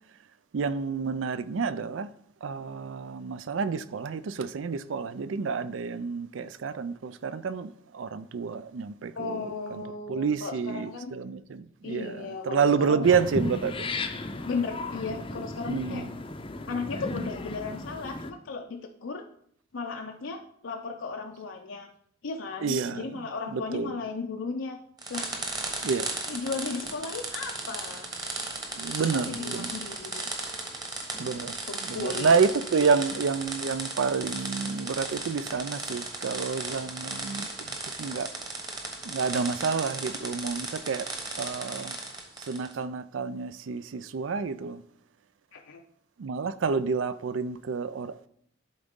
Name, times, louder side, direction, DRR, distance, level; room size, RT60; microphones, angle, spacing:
voice 1, 0.5-2.1 2.4-9.5 10.1-13.9 15.7-16.1 22.6-23.2 23.5-23.9 25.8-26.1 28.7-29.7 31.2-31.5 31.9-38.3 39.0-41.1 41.4-42.0 42.5-44.8 46.2-48.1, right 5 dB, 85° right, 0.4 m, -29 dB
voice 2, 9.1-11.1 11.8-13.0 14.5-16.1 16.7-19.2 19.7-21.9 22.2-24.8 25.1-25.3 26.3-28.1 28.8-30.3 31.7-32.4 45.5-45.8, left 4 dB, 85° left, 0.5 m, -35 dB
sound 1, 13.0-18.3, left 2 dB, 25° left, 0.5 m, -35 dB
sound 2, 25.0-42.7, right 2 dB, 20° right, 1.2 m, -36 dB
11.5 x 3.9 x 3.6 m
head